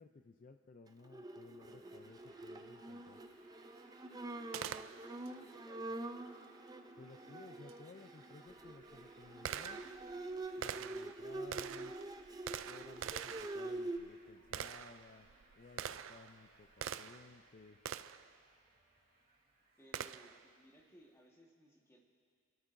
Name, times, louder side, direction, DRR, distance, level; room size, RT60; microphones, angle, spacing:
voice 1, 0.0-3.2 7.0-9.8 10.6-12.0 12.6-15.3 15.6-17.8, left 4 dB, 45° left, 6 dB, 0.4 m, -57 dB
Bowed string instrument, 1.0-14.0, right 2 dB, 20° right, 0.5 m, -46 dB
sound 1, 1.6-20.7, right 2 dB, 45° right, 2.9 m, -68 dB
voice 2, 4.1-6.0 19.8-22.0, right 1 dB, 15° left, -1 dB, 1.4 m, -62 dB
Gunshot gunfire, 4.5-5.3 7.7-7.8 8.5-17.4 17.9-18.3 19.9-20.5, right 9 dB, 85° right, 0.4 m, -45 dB
30.0 x 12.5 x 2.6 m, 2.2 s
head